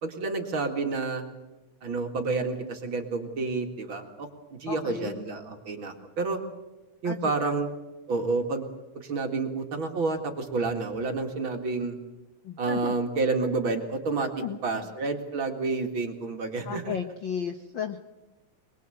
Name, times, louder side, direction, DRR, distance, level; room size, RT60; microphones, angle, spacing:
voice 1, 0.0-1.2 1.8-4.3 4.6-6.4 7.0-7.7 8.1-8.7 9.0-12.0 12.6-14.3 14.6-16.9, right 3 dB, 40° right, 4 dB, 2.3 m, -29 dB
voice 2, 4.7-5.2 7.0-7.6 12.4-12.9 14.4-14.9 16.6-18.0, left 7 dB, 80° left, 7 dB, 1.0 m, -34 dB
22.5 x 22.0 x 7.8 m, 1.1 s
omnidirectional pair, 3.9 m